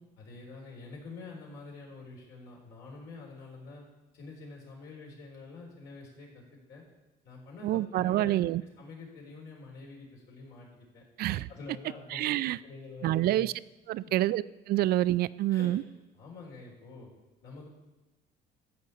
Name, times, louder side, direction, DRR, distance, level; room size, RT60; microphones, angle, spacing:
voice 1, 0.2-3.8 4.1-6.8 7.2-11.0 11.5-12.4 12.6-13.4 14.0-14.1 15.5-15.7 16.1-17.1 17.4-17.7, left 3 dB, 80° left, -2 dB, 4.0 m, -47 dB
voice 2, 7.6-8.6 11.2-11.5 12.1-12.6 13.0-13.5 13.9-15.8, right 14 dB, 65° right, 18 dB, 0.4 m, -27 dB
13.5 x 5.2 x 8.3 m, 1.1 s
cardioid pair, 110°, 17 cm